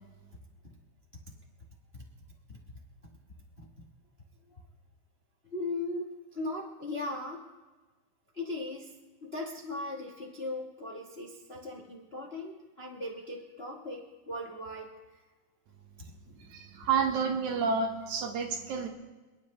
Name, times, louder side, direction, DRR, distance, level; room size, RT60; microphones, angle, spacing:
voice 1, 5.4-7.4 8.3-8.9 9.2-15.2, left 2 dB, 40° left, 0 dB, 0.8 m, -38 dB
voice 2, 16.4-18.9, right 5 dB, 85° right, 4 dB, 2.7 m, -30 dB
27.5 x 10.0 x 3.2 m, 1.2 s
omnidirectional pair, 3.3 m